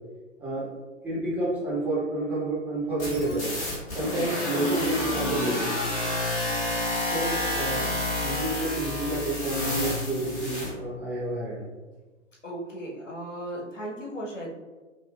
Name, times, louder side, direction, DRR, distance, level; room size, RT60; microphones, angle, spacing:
voice 1, 1.0-3.5 3.9-5.6 7.1-7.9 8.2-11.6, right 1 dB, 5° right, -9 dB, 0.9 m, -29 dB
sound 1, 3.0-10.7, left 1 dB, 20° left, 1.1 m, -29 dB
voice 2, 12.4-14.5, right 1 dB, 85° left, -4 dB, 1.2 m, -36 dB
5.4 x 2.3 x 2.3 m, 1.2 s
figure-of-eight pair, 115°, 37 cm